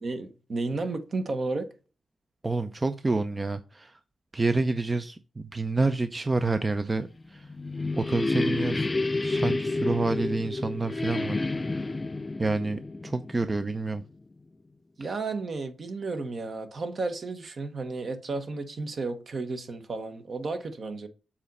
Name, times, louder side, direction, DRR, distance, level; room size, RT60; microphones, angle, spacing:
voice 1, 0.0-1.7 15.0-21.1, right 3 dB, 55° right, 1.2 m, -33 dB
voice 2, 2.4-4.0 4.3-7.5 7.9-8.9 9.2-11.4 11.7-11.8 12.4-14.0, right 3 dB, 25° right, 0.6 m, -28 dB
sound 1, 7.2-13.9, left 2 dB, 25° left, 0.3 m, -30 dB
7.3 x 4.2 x 5.4 m
cardioid pair, 90°, 0 cm